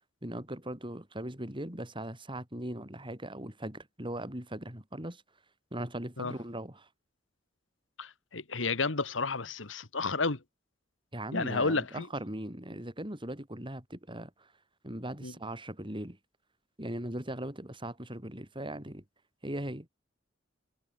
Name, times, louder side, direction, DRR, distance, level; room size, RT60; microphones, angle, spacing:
voice 1, 0.2-5.2 5.7-6.9 11.1-14.5 14.8-16.2 16.8-19.0 19.4-19.9, right 1 dB, 25° right, 7.0 m, -39 dB
voice 2, 8.0-10.4 11.3-12.1 15.2-15.3, left 3 dB, 90° left, 1.9 m, -31 dB
head